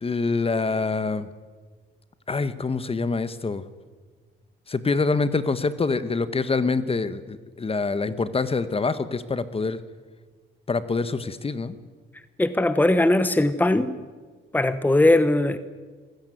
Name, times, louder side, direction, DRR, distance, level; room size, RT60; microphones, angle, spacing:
voice 1, 0.0-1.3 2.3-3.6 4.7-9.8 10.7-11.8, left 4 dB, 30° left, 13 dB, 1.4 m, -25 dB
voice 2, 12.4-14.0 14.5-15.6, left 1 dB, 10° left, 12 dB, 1.2 m, -20 dB
25.0 x 16.0 x 9.3 m, 1.4 s
cardioid pair, 90°, 20 cm